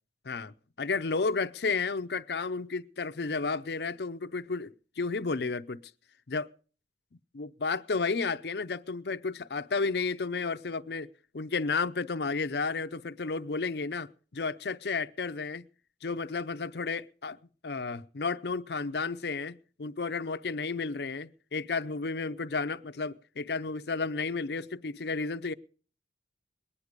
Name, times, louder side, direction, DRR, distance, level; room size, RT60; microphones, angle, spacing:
voice 1, 0.2-5.8 6.3-6.5 7.3-11.1 11.3-15.7 16.0-17.4 17.6-25.5, left 4 dB, 65° left, 0.6 m, -32 dB
21.0 x 9.7 x 5.1 m
head